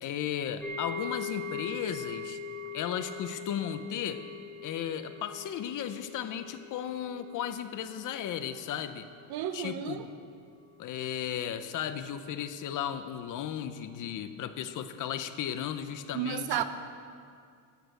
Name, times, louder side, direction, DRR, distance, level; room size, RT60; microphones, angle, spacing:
voice 1, 0.0-2.4 2.7-4.2 4.6-9.1 9.5-10.1 10.8-16.6, left 9 dB, 45° left, 10 dB, 0.6 m, -35 dB
sound 1, 0.6-9.7 10.0-10.2 10.7-10.8, left 4 dB, 5° left, 1.9 m, -42 dB
voice 2, 9.3-10.0 16.1-16.6, right 10 dB, 55° right, 10 dB, 0.8 m, -32 dB
13.0 x 8.5 x 7.8 m, 2.2 s
cardioid pair, 180°, 46 cm